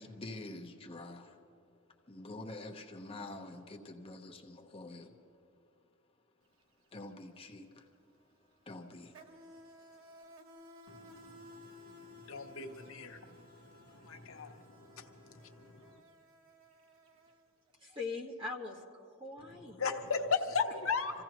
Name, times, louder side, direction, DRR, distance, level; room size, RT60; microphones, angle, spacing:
voice 1, 0.0-1.4 2.1-5.1 6.9-7.9 8.7-9.2, left 2 dB, 30° left, 0.9 m, -46 dB
Insect, 6.4-6.6 6.9-17.9, equal, 80° right, 1.2 m, -57 dB
voice 2, 10.9-16.0 19.5-21.2, left 5 dB, 75° left, 0.9 m, -38 dB
voice 3, 17.8-19.8, left 3 dB, 25° right, 1.6 m, -42 dB
26.5 x 15.5 x 3.0 m
head